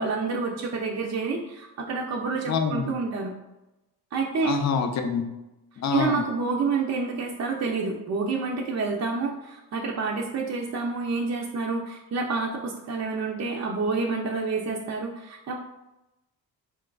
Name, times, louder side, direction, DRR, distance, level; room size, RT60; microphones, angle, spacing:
voice 1, 0.0-3.3 4.1-4.6 5.9-15.5, right 4 dB, 45° right, -1 dB, 0.5 m, -28 dB
voice 2, 2.5-2.9 4.4-5.3 5.8-6.2, left 6 dB, 45° left, 5 dB, 0.5 m, -26 dB
4.2 x 2.3 x 2.3 m, 0.97 s
cardioid pair, 75°, 38 cm